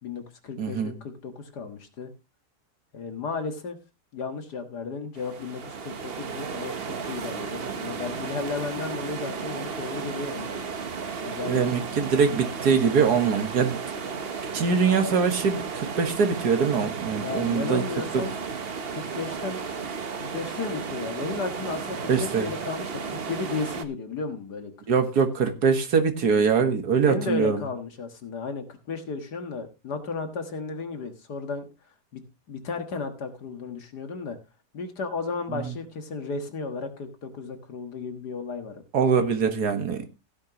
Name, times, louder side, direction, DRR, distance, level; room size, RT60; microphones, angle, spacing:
voice 1, 0.0-2.1 2.9-3.8 4.1-10.7 11.2-11.9 17.2-18.3 18.9-19.6 20.1-24.9 27.0-31.7 32.1-34.4 34.7-38.8, left 4 dB, 65° left, 2.1 m, -34 dB
voice 2, 0.6-0.9 11.5-13.8 14.5-17.8 18.1-18.2 22.1-22.5 24.9-27.6 35.5-35.7 38.9-40.1, right 6 dB, 65° right, 2.0 m, -23 dB
sound 1, 5.1-23.8, right 5 dB, 40° right, 1.1 m, -34 dB
15.5 x 9.8 x 2.9 m
omnidirectional pair, 1.9 m